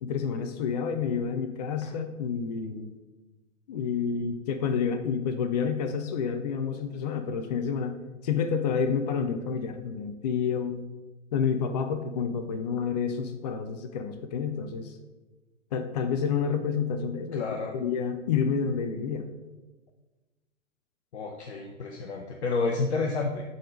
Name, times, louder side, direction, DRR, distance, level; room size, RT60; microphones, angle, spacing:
voice 1, 0.0-2.9 3.7-7.9 8.2-10.8 11.3-15.0 15.7-17.4 17.7-19.3, left 6 dB, 35° left, 8 dB, 0.5 m, -29 dB
voice 2, 17.3-17.7 21.1-23.4, left 3 dB, 60° left, 2 dB, 0.9 m, -30 dB
7.4 x 4.0 x 4.9 m, 1.2 s
figure-of-eight pair, 110°, 38 cm